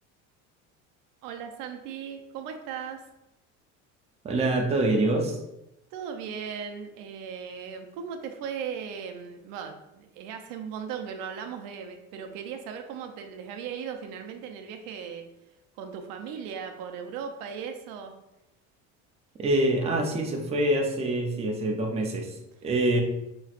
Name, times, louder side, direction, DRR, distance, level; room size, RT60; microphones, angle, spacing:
voice 1, 1.2-3.1 5.9-15.3 15.8-18.1 22.9-23.0, right 7 dB, 80° right, 5 dB, 0.6 m, -37 dB
voice 2, 4.2-5.4 19.4-23.0, right 1 dB, 20° right, 1 dB, 0.5 m, -25 dB
5.7 x 3.0 x 2.4 m, 0.91 s
cardioid pair, 145°, 33 cm